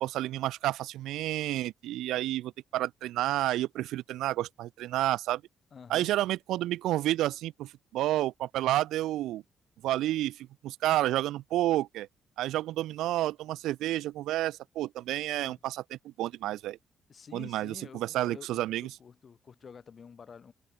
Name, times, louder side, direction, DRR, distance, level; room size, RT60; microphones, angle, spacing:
voice 1, 0.0-5.4 5.9-9.4 9.8-12.1 12.4-16.8 17.3-18.9, right 14 dB, 85° right, 0.6 m, -30 dB
voice 2, 5.7-6.1 15.4-15.6 17.1-20.5, left 6 dB, 45° left, 6.5 m, -49 dB
cardioid pair, 90°, 0 cm